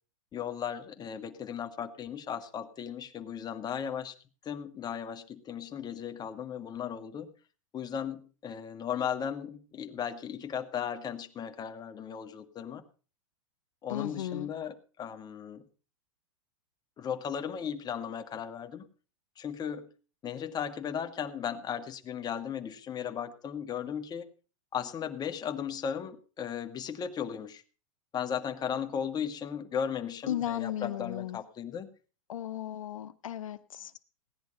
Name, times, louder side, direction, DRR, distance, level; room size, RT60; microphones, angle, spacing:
voice 1, 0.3-4.2 4.4-7.3 7.7-12.8 13.8-15.6 17.0-18.9 19.4-19.9 20.2-24.3 24.7-27.6 28.1-31.9, left 8 dB, 25° left, 7 dB, 1.6 m, -36 dB
voice 2, 13.9-14.5 30.3-31.4 32.3-33.9, left 12 dB, 80° left, 13 dB, 0.8 m, -35 dB
17.0 x 10.5 x 5.3 m, 0.36 s
hypercardioid pair, 120°, 17 cm